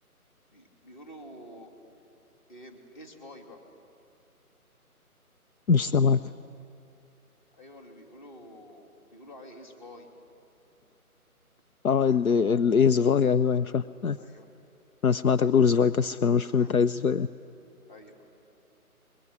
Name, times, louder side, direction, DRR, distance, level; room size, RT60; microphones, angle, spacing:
voice 1, 0.5-1.7 2.5-3.6 7.5-10.1 14.2-14.5 16.5-16.7 17.9-18.3, equal, 30° left, 3 dB, 3.0 m, -48 dB
voice 2, 5.7-6.2 11.8-14.2 15.0-17.3, left 6 dB, 70° left, 12 dB, 0.7 m, -22 dB
23.0 x 22.0 x 9.7 m, 2.5 s
figure-of-eight pair, 165°, 45 cm